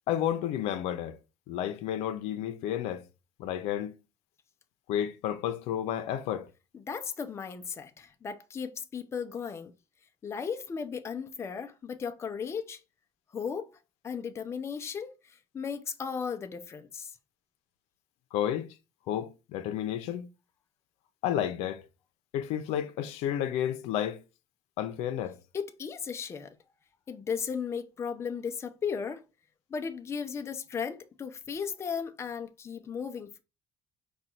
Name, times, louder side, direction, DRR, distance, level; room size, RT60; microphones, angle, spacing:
voice 1, 0.1-1.2 1.5-3.0 3.4-3.9 4.9-6.5 18.3-18.7 19.1-20.3 21.2-21.8 22.3-24.2 24.8-25.4, left 10 dB, 90° left, 0.6 m, -31 dB
voice 2, 6.7-9.7 10.2-12.8 13.3-13.8 14.0-17.2 25.5-26.6 27.1-29.2 29.7-33.4, left 6 dB, 25° left, 0.5 m, -36 dB
5.1 x 2.3 x 4.3 m
cardioid pair, 135°, 11 cm